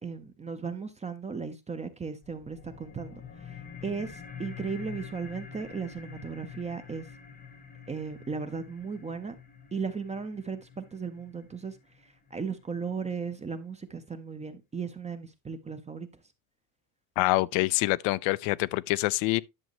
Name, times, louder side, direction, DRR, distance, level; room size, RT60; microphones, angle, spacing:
voice 1, 0.0-7.1 7.9-9.3 9.7-16.1, right 5 dB, 15° right, 0.6 m, -36 dB
sound 1, 2.2-13.2, left 7 dB, 20° left, 0.9 m, -47 dB
voice 2, 17.2-19.4, left 20 dB, 75° left, 0.5 m, -26 dB
11.0 x 6.4 x 2.9 m
cardioid pair, 155°, 48 cm